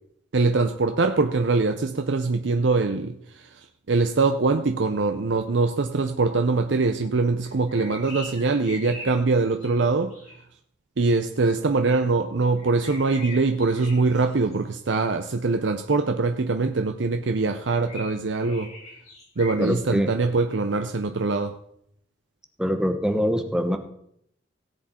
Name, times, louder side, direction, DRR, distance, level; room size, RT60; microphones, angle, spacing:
voice 1, 0.3-10.1 11.0-18.7 19.4-21.6, right 3 dB, 90° right, 0.7 m, -23 dB
sound 1, 7.4-10.4 12.6-14.6 17.6-19.8, left 2 dB, 40° left, 3.6 m, -41 dB
voice 2, 19.6-20.1 22.6-23.8, equal, 5° right, 1.0 m, -24 dB
17.5 x 7.5 x 4.3 m
head